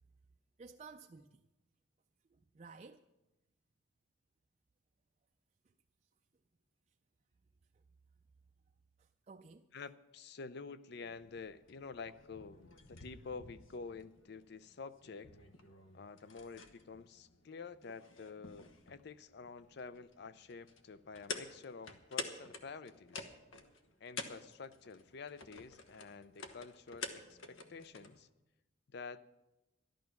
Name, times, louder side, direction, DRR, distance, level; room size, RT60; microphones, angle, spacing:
voice 1, 0.6-1.4 2.3-3.1 5.6-5.7 7.7-7.8 9.0-9.7, right 4 dB, 35° right, 0.4 m, -55 dB
voice 2, 9.7-15.3 15.9-23.3 24.0-28.3 28.9-29.3, left 4 dB, 55° left, 0.5 m, -49 dB
sound 1, 10.9-28.2, left 4 dB, 80° left, 1.2 m, -50 dB
12.5 x 11.5 x 5.9 m
head